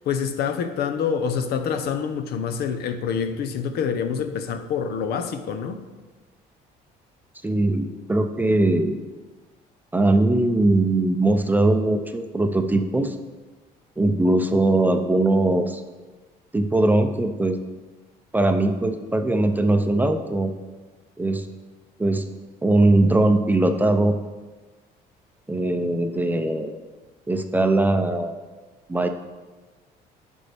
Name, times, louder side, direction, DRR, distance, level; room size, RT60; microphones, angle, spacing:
voice 1, 0.1-5.8, left 7 dB, 70° left, 8 dB, 0.7 m, -26 dB
voice 2, 7.4-9.0 9.9-13.2 14.0-15.8 16.5-17.6 18.3-20.5 21.2-21.4 22.0-22.2 22.6-24.2 25.5-26.7 27.3-28.4 28.9-29.1, right 2 dB, 10° right, 6 dB, 0.5 m, -20 dB
10.5 x 5.4 x 3.4 m, 1.3 s
cardioid pair, 110°, 17 cm